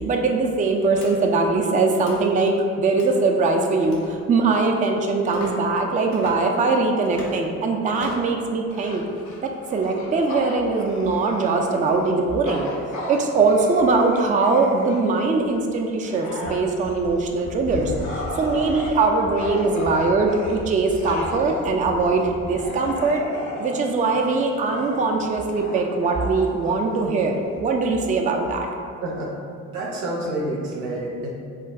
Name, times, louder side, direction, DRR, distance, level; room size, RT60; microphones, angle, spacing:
voice 1, 0.0-9.0 9.4-12.7 13.1-17.9 18.3-23.2 23.6-28.7, right 3 dB, 20° right, 2 dB, 0.3 m, -21 dB
sound 1, 0.9-1.1 1.9-2.2 2.9-3.1 3.8-4.1 5.3-5.5 6.1-6.3 7.0-7.4 7.9-8.3, left 1 dB, 90° left, 0.6 m, -37 dB
Bark / Growling, 8.7-15.2 15.7-27.6, left 1 dB, 50° left, 0.7 m, -35 dB
sound 2, 16.5-16.6 16.8-17.1 17.4-17.7 18.0-18.3 18.6-18.9 19.2-19.5 19.8-20.1 20.4-20.7 21.0-21.3 21.6-21.9 22.2-22.5 22.8-22.9, left 3 dB, 70° left, 0.9 m, -38 dB
voice 2, 29.0-29.3 29.7-31.3, right 1 dB, 85° right, -2 dB, 0.5 m, -28 dB
2.4 x 2.2 x 3.6 m, 2.3 s
hypercardioid pair, 45°, 38 cm